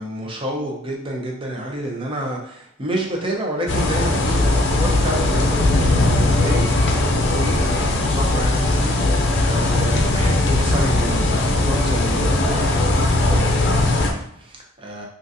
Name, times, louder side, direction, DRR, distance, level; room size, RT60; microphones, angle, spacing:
voice 1, 0.0-15.1, right 1 dB, 25° right, -1 dB, 0.6 m, -29 dB
sound 1, 3.7-14.1, left 2 dB, 60° left, 0.5 m, -19 dB
3.7 x 2.5 x 2.6 m, 0.72 s
head